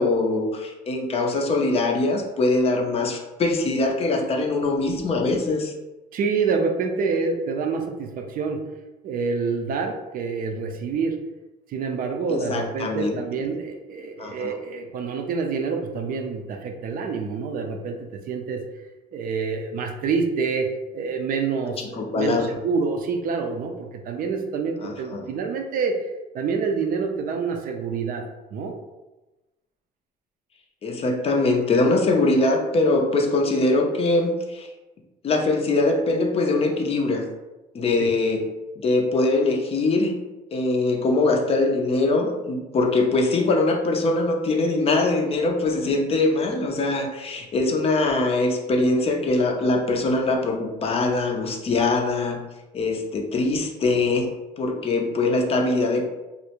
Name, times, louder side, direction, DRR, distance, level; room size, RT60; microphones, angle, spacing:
voice 1, 0.0-5.7 12.3-13.1 14.2-14.5 21.9-22.5 24.8-25.3 30.8-34.7 35.2-37.2 37.7-38.4 38.8-40.2 40.5-52.4 52.7-56.0, left 2 dB, 35° left, 2 dB, 0.4 m, -22 dB
voice 2, 6.1-8.6 9.0-11.1 11.7-18.6 19.1-26.0 26.3-28.2 28.5-28.7 38.0-38.1, right 5 dB, 55° right, 4 dB, 0.4 m, -27 dB
2.4 x 2.0 x 2.9 m, 1.1 s
cardioid pair, 110°, 17 cm